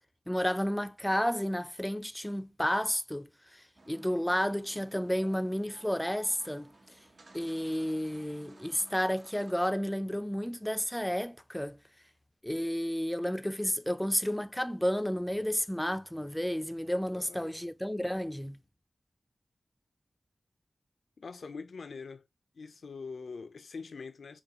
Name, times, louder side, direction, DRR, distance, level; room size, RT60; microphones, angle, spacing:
voice 1, 0.3-6.7 7.3-11.8 12.4-18.6, equal, 5° left, 0.4 m, -31 dB
sound 1, 3.8-9.5, right 2 dB, 70° right, 0.8 m, -56 dB
voice 2, 17.1-17.5 21.2-22.3 22.5-24.4, left 4 dB, 85° left, 0.5 m, -43 dB
5.1 x 2.3 x 2.9 m
wide cardioid pair, 70°, 0 cm